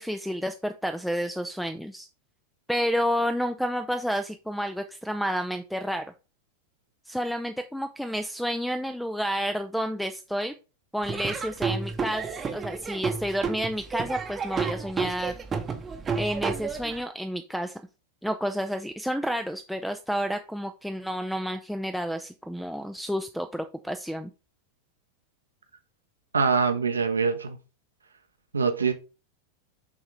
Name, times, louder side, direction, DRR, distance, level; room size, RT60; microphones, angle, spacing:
voice 1, 0.0-2.1 2.7-6.0 7.1-10.5 10.9-15.3 16.2-17.8 18.2-24.3, equal, ahead, 0.4 m, -30 dB
Laughter / Drum, 11.0-17.0, right 5 dB, 20° right, 0.9 m, -31 dB
voice 2, 26.3-27.6 28.5-28.9, right 5 dB, 75° right, 0.8 m, -24 dB
6.2 x 3.7 x 4.7 m
figure-of-eight pair, 90°, 0 cm